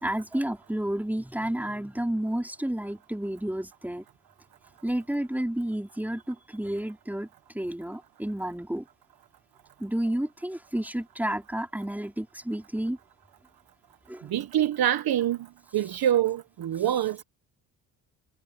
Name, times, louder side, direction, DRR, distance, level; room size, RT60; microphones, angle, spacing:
voice 1, 0.0-4.0 4.8-7.3 7.5-8.9 9.8-13.0 14.1-14.3, right 1 dB, 5° right, 4.4 m, -31 dB
voice 2, 14.3-15.5 15.7-17.2, right 11 dB, 60° right, 1.3 m, -25 dB
cardioid pair, 75°, 40 cm